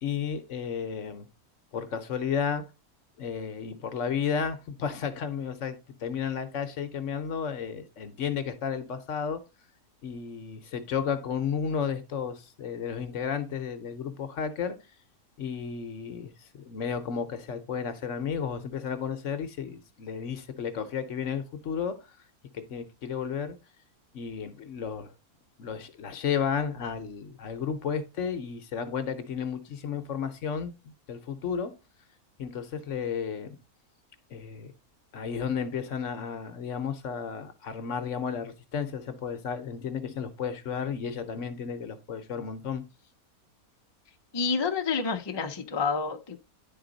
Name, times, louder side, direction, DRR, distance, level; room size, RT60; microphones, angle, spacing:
voice 1, 0.0-1.3 1.7-2.6 3.2-9.4 10.0-14.8 15.4-22.0 22.5-23.6 24.1-25.1 25.6-31.7 32.4-33.6 34.3-34.7 35.1-42.8, left 7 dB, 60° left, 1.0 m, -33 dB
voice 2, 44.3-46.4, left 5 dB, 35° left, 0.4 m, -29 dB
10.5 x 4.0 x 3.9 m
omnidirectional pair, 1.6 m